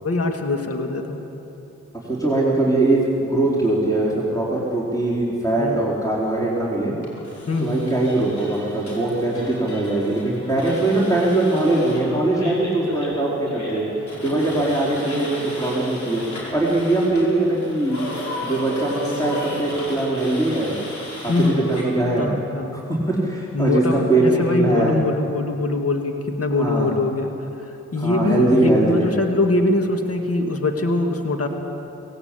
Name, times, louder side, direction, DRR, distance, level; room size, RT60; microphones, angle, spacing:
voice 1, 0.0-1.2 5.6-5.8 7.5-7.9 21.3-21.6 22.2-22.8 23.5-27.3 27.6-31.5, left 2 dB, 50° left, 4 dB, 2.2 m, -23 dB
voice 2, 2.1-6.9 7.6-13.8 14.2-16.2 16.5-18.0 18.4-20.8 21.2-22.3 22.9-24.9 26.5-26.9 28.0-29.2, right 2 dB, 10° left, -6 dB, 4.3 m, -21 dB
sound 1, 7.0-21.8, left 1 dB, 65° left, 5.4 m, -34 dB
18.0 x 17.0 x 8.5 m, 3.0 s
cardioid pair, 45°, 30 cm